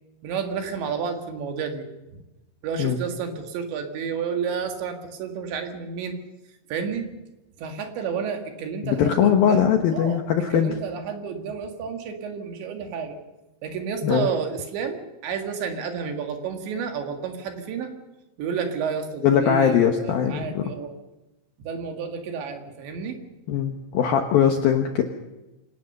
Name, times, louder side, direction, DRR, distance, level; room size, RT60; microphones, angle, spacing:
voice 1, 0.2-1.9 2.6-6.2 6.7-7.1 7.6-13.2 13.6-17.9 18.4-20.9 21.6-23.2, right 6 dB, 65° right, 5 dB, 4.0 m, -31 dB
voice 2, 8.8-10.7 14.0-14.3 19.2-20.6 23.5-25.0, left 8 dB, 70° left, 5 dB, 2.3 m, -21 dB
26.0 x 18.0 x 6.7 m, 1.0 s
omnidirectional pair, 5.8 m